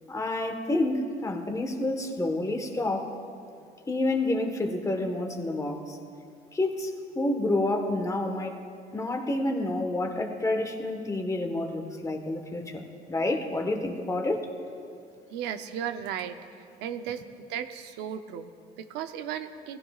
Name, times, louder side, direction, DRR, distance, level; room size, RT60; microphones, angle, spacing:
voice 1, 0.1-3.1 3.9-6.0 6.5-8.6 8.9-14.5, left 2 dB, 20° left, 3 dB, 1.3 m, -29 dB
voice 2, 15.3-16.4 16.8-17.2 17.5-19.8, right 9 dB, 90° right, 9 dB, 0.7 m, -35 dB
20.0 x 16.0 x 2.4 m, 2.4 s
cardioid pair, 110°, 17 cm